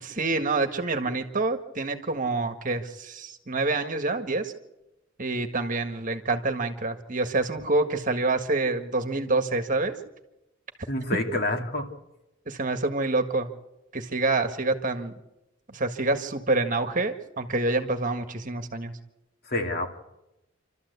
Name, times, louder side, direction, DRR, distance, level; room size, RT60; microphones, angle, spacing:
voice 1, 0.0-4.5 5.2-9.9 12.5-13.5 13.9-15.1 15.7-18.9, right 3 dB, 40° right, 7 dB, 1.7 m, -27 dB
voice 2, 10.9-12.0 19.5-19.9, left 2 dB, 50° left, 3 dB, 2.6 m, -28 dB
28.0 x 13.0 x 8.3 m, 0.93 s
head